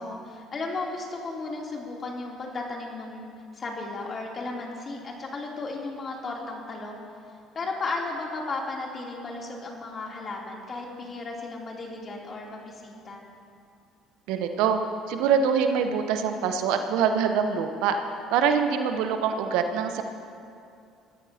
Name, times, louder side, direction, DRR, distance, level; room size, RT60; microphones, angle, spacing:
voice 1, 0.0-7.0 7.5-13.2, left 3 dB, 40° left, -1 dB, 3.0 m, -35 dB
voice 2, 14.3-14.8 15.1-18.0 18.3-20.0, right 7 dB, 70° right, 7 dB, 0.9 m, -24 dB
22.5 x 14.0 x 2.8 m, 2.4 s
hypercardioid pair, 55°, 0 cm